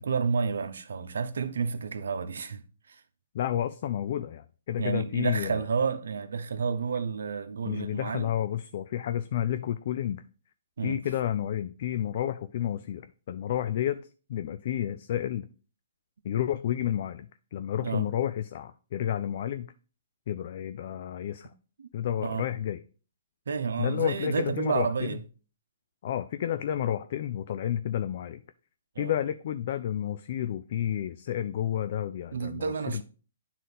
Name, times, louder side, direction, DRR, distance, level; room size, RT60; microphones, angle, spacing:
voice 1, 0.0-3.0 4.8-8.3 10.8-11.0 17.8-18.1 21.8-21.9 22.2-22.5 23.5-25.2 28.9-29.1 32.3-33.0, right 5 dB, 80° right, 0.8 m, -30 dB
voice 2, 3.3-5.7 7.7-10.2 10.8-14.0 14.3-15.5 16.2-19.7 20.3-21.5 21.9-22.8 23.8-25.2 26.0-28.4 29.0-33.0, left 10 dB, 50° left, 0.4 m, -31 dB
9.2 x 3.9 x 4.1 m
hypercardioid pair, 150°, 0 cm